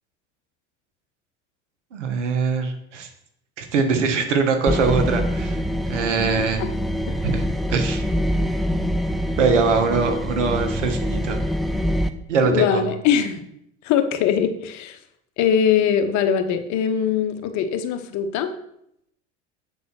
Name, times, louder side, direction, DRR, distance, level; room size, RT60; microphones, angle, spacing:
voice 1, 1.9-3.1 3.6-5.6 5.9-6.6 7.2-7.4 7.7-8.0 9.4-11.4 12.3-12.8, right 5 dB, 90° right, 6 dB, 1.3 m, -22 dB
sound 1, 4.7-12.1, equal, ahead, 0.5 m, -25 dB
voice 2, 12.4-13.4 13.8-15.0 15.4-18.5, left 8 dB, 55° left, 8 dB, 1.1 m, -21 dB
7.8 x 4.1 x 6.1 m, 0.76 s
hypercardioid pair, 85°, 35 cm